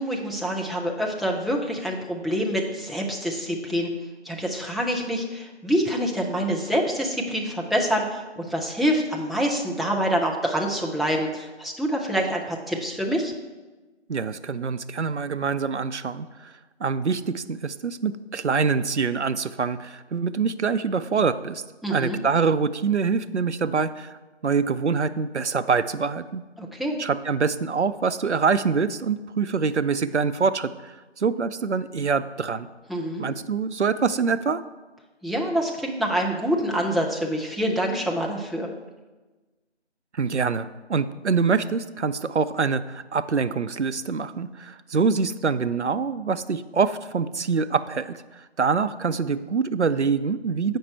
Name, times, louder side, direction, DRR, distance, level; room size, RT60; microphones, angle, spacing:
voice 1, 0.0-3.9 4.2-13.3 21.8-22.2 26.6-27.0 32.9-33.3 35.2-38.7, equal, ahead, -2 dB, 0.5 m, -26 dB
voice 2, 14.1-16.5 16.8-21.6 21.9-24.2 24.4-26.4 27.0-32.7 33.2-34.6 40.1-48.2 48.6-50.8, right 5 dB, 75° right, 13 dB, 0.5 m, -25 dB
7.9 x 5.3 x 4.4 m, 1.2 s
figure-of-eight pair, 175°, 35 cm